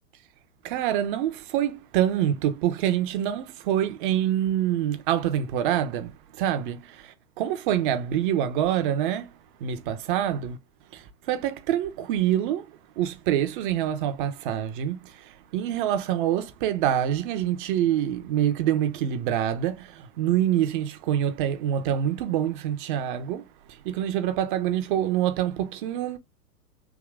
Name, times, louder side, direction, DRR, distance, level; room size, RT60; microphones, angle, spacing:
voice 1, 0.6-6.1 6.4-9.3 9.6-10.6 10.9-12.7 13.0-23.4 23.8-26.2, right 11 dB, 30° right, 0.6 m, -26 dB
3.6 x 3.0 x 3.3 m
figure-of-eight pair, 110°, 49 cm